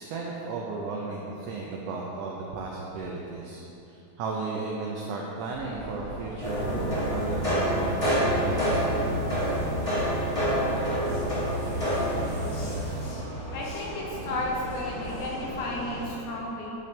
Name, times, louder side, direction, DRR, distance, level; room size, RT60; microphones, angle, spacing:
voice 1, 0.0-9.0, right 3 dB, 75° right, -2 dB, 1.5 m, -35 dB
Vehicle, 5.5-16.1, equal, 45° left, 1.3 m, -40 dB
sound 1, 6.4-13.0, equal, 15° left, 1.2 m, -27 dB
voice 2, 13.5-16.7, left 1 dB, 80° left, -3 dB, 2.6 m, -33 dB
10.5 x 6.7 x 3.2 m, 2.9 s
omnidirectional pair, 3.5 m